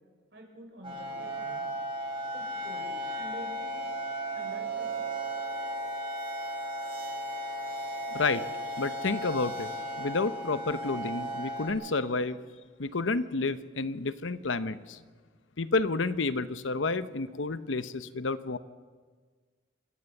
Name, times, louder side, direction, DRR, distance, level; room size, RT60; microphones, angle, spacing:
voice 1, 0.3-1.7 2.3-4.0 4.3-4.9, equal, 65° right, 2 dB, 5.5 m, -47 dB
sound 1, 0.8-11.7, right 1 dB, 30° right, 7.7 m, -35 dB
voice 2, 8.8-9.7 10.0-12.4 12.8-15.0 15.6-18.6, left 3 dB, 90° left, 13 dB, 0.9 m, -30 dB
27.5 x 15.0 x 7.2 m, 1.5 s
head